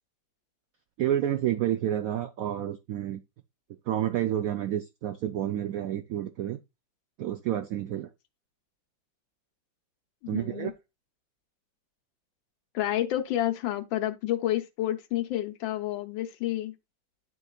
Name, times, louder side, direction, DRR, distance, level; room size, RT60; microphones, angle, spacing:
voice 1, 1.0-3.2 3.9-6.6 7.2-8.1 10.3-10.7, right 11 dB, 85° right, 0.7 m, -29 dB
voice 2, 10.2-10.7 12.7-16.7, left 13 dB, 85° left, 1.5 m, -29 dB
11.0 x 3.9 x 2.3 m
omnidirectional pair, 2.1 m